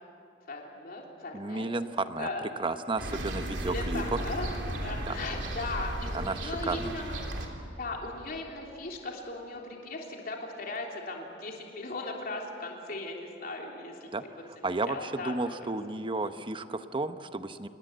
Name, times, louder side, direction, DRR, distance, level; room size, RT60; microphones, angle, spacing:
voice 1, 0.5-1.7 2.2-2.4 3.7-7.1 7.8-14.1 14.6-15.8 16.2-16.3, left 2 dB, 50° left, 0 dB, 3.3 m, -38 dB
voice 2, 1.3-4.2 5.1-5.2 6.1-6.9 14.1-14.2 14.6-17.7, right 2 dB, 25° right, 10 dB, 0.9 m, -33 dB
sound 1, 3.0-7.5, right 1 dB, 65° right, 3.3 m, -35 dB
27.5 x 21.0 x 8.0 m, 2.6 s
head